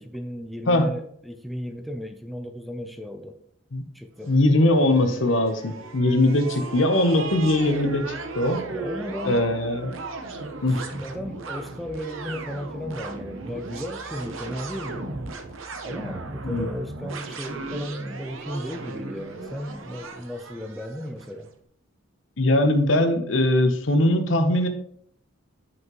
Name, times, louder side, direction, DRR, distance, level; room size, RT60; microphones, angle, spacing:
voice 1, 0.0-3.4 3.9-4.3 8.7-9.4 10.7-15.1 15.8-21.5, equal, ahead, 5 dB, 0.5 m, -35 dB
voice 2, 4.3-8.6 9.2-9.9 10.6-10.8 16.4-16.7 22.4-24.7, left 1 dB, 70° left, 7 dB, 0.9 m, -21 dB
sound 1, 4.3-21.3, right 3 dB, 90° right, 0.8 m, -37 dB
8.1 x 5.7 x 3.0 m, 0.66 s
head